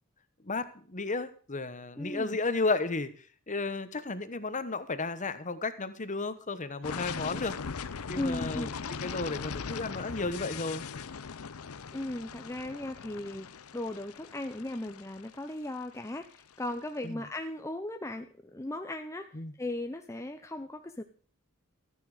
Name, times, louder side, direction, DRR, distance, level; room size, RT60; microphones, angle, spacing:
voice 1, 0.4-3.1 3.5-7.6 8.1-10.8 17.0-17.2 19.3-19.5, left 3 dB, 35° left, 12 dB, 1.2 m, -33 dB
voice 2, 2.0-2.4 8.2-8.7 11.9-13.5 13.7-19.3 19.6-21.0, left 1 dB, 15° left, 6 dB, 0.7 m, -37 dB
sound 1, 6.8-16.6, left 5 dB, 75° left, 0.7 m, -40 dB
14.5 x 9.9 x 5.0 m, 0.43 s
head